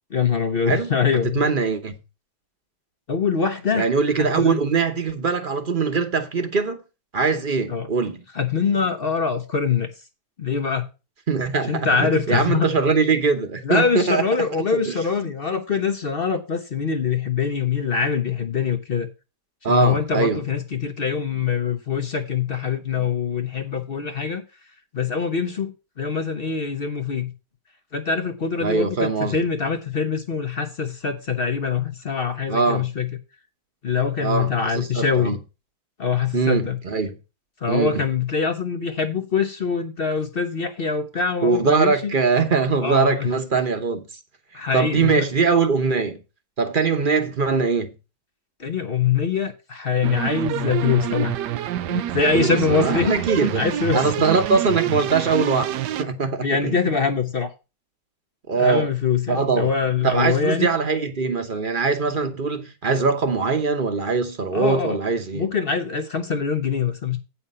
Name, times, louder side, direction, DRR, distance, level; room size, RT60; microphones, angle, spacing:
voice 1, 0.1-1.4 3.1-3.9 4.2-4.6 7.7-7.9 8.3-9.9 10.4-10.8 11.7-12.7 13.6-19.1 19.7-24.4 24.9-27.3 27.9-33.1 33.8-35.4 36.0-36.8 37.6-42.1 42.8-43.3 44.5-45.3 48.6-51.4 51.9-53.2 53.6-54.1 56.4-57.5 58.6-60.7 64.5-65.0 65.3-67.2, left 6 dB, 45° left, 0.8 m, -24 dB
voice 2, 1.2-2.0 3.7-6.8 7.1-8.2 11.3-14.3 14.8-15.0 19.6-20.4 28.6-29.4 32.5-32.9 34.2-35.4 36.3-37.2 37.7-38.1 41.4-44.2 44.7-46.2 46.6-47.9 52.3-56.8 58.5-58.9 59.3-59.7 60.0-65.5, right 4 dB, 35° right, 1.0 m, -22 dB
sound 1, 50.0-56.0, right 11 dB, 85° right, 1.3 m, -27 dB
8.7 x 5.7 x 5.4 m
omnidirectional pair, 1.8 m